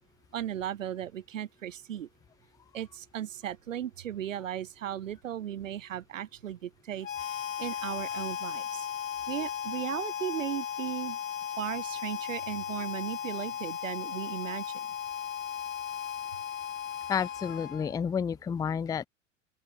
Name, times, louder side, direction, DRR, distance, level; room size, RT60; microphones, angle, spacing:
voice 1, 0.3-2.1 2.7-7.1 7.6-8.9 9.3-11.2 11.6-14.7, right 10 dB, 75° right, 1.1 m, -36 dB
Harmonica, 7.0-18.1, left 9 dB, 85° left, 1.0 m, -36 dB
voice 2, 17.1-19.1, left 7 dB, 10° left, 0.5 m, -30 dB
open air
figure-of-eight pair, 90°, 38 cm